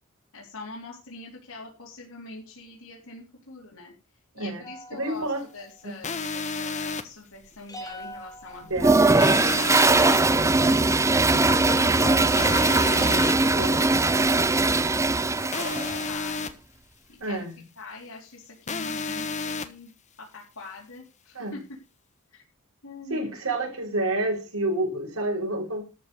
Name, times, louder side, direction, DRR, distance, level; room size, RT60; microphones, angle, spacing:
voice 1, 0.3-3.9 4.4-5.3 5.5-8.9 9.2-10.0 10.3-12.6 14.1-15.1 15.3-16.5 17.1-17.4 17.8-19.9 20.2-21.6 22.3-22.4 22.8-23.4, left 3 dB, 75° left, 3.9 m, -43 dB
sound 1, 4.6-6.0 7.7-9.4 10.5-10.6 11.1-12.4 13.1-13.4 13.8-13.9 14.2-14.9, left 1 dB, 15° left, 2.0 m, -42 dB
voice 2, 4.9-5.4 5.8-5.9 8.7-9.1 10.3-10.6 13.0-13.3 13.5-14.0 17.2-17.5 21.3-21.6 23.1-25.8, right 2 dB, 80° right, 4.8 m, -29 dB
sound 2, 6.0-7.0 9.2-10.2 12.4-13.3 15.5-16.5 18.7-19.7, left 4 dB, 35° left, 1.2 m, -31 dB
Toilet flush, 8.8-16.0, right 3 dB, 15° right, 0.5 m, -20 dB
13.5 x 5.5 x 6.8 m
head